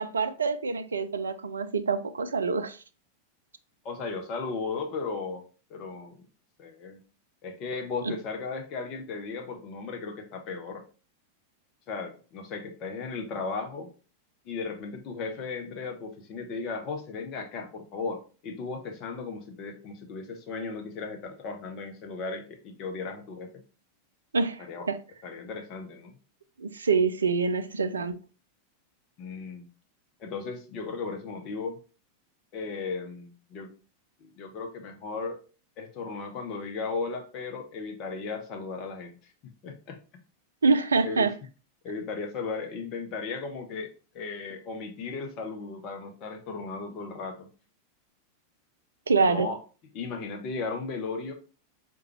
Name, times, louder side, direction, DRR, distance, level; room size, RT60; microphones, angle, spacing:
voice 1, 0.0-2.8 8.0-8.1 24.3-25.0 26.6-28.2 40.6-41.3 49.1-49.5, right 4 dB, 75° right, 0.3 m, -26 dB
voice 2, 3.8-6.3 6.6-7.0 7.4-10.8 11.9-13.9 14.4-23.5 24.7-24.9 25.2-26.1 29.2-29.7 30.2-31.8 32.5-33.7 34.2-35.4 35.8-40.0 41.0-41.3 41.8-47.5 49.2-49.6 49.9-51.3, left 4 dB, 40° left, 0.6 m, -36 dB
4.8 x 2.2 x 2.9 m
figure-of-eight pair, 90°, 0 cm